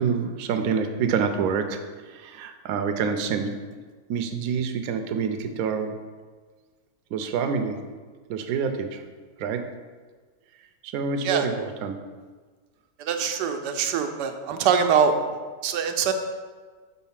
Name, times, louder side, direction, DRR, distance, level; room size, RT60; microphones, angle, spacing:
voice 1, 0.0-3.6 4.1-6.0 7.1-7.8 8.3-9.0 9.4-9.6 10.8-12.0, right 6 dB, 70° right, 6 dB, 1.0 m, -27 dB
voice 2, 13.0-15.1 15.6-16.1, right 7 dB, 90° right, 6 dB, 1.2 m, -23 dB
5.4 x 3.9 x 5.7 m, 1.4 s
omnidirectional pair, 1.8 m